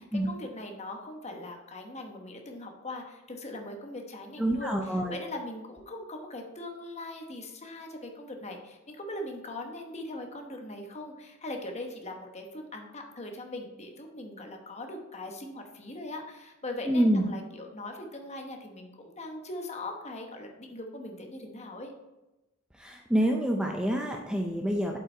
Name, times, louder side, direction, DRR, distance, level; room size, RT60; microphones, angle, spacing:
voice 1, 0.2-4.7 5.1-21.9, left 2 dB, 30° left, 3 dB, 1.1 m, -40 dB
voice 2, 4.4-5.2 16.9-17.3 22.7-25.0, right 1 dB, 5° right, 1 dB, 0.5 m, -27 dB
7.6 x 5.6 x 4.4 m, 1.0 s
head